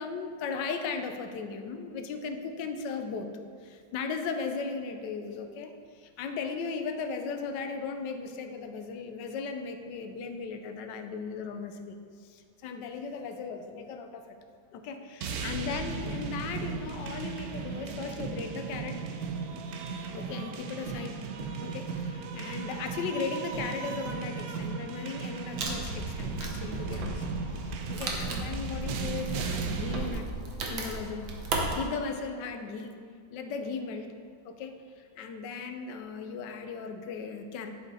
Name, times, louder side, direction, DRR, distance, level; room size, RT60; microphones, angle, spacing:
voice 1, 0.0-3.3 3.6-14.4 14.7-19.0 20.1-21.2 21.6-27.3 27.6-30.3 30.7-31.2 31.7-33.0 33.3-34.1 34.4-37.7, left 5 dB, 75° left, 6 dB, 1.2 m, -37 dB
sound 1, 15.2-30.2, right 5 dB, 65° right, 1.0 m, -36 dB
Wood, 25.6-31.8, right 2 dB, 90° right, 1.8 m, -35 dB
11.0 x 4.9 x 4.1 m, 2.1 s
omnidirectional pair, 2.0 m